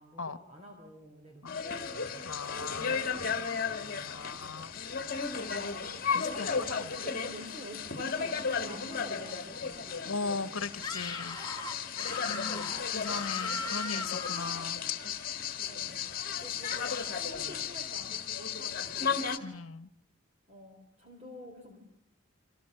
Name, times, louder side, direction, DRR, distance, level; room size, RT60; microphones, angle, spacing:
voice 1, 0.0-2.3 2.6-4.8 5.6-11.1 12.3-13.6 15.7-19.3 20.5-21.8, equal, 30° right, 4.0 m, -49 dB
sound 1, 1.5-19.4, left 6 dB, 40° left, 2.1 m, -35 dB
voice 2, 2.2-2.9 4.0-4.7 6.1-6.9 10.0-11.4 12.2-14.8 19.4-19.9, left 4 dB, 75° left, 1.2 m, -38 dB
Screaming, 10.8-14.7, left 3 dB, 20° left, 2.8 m, -38 dB
28.5 x 27.0 x 6.8 m
head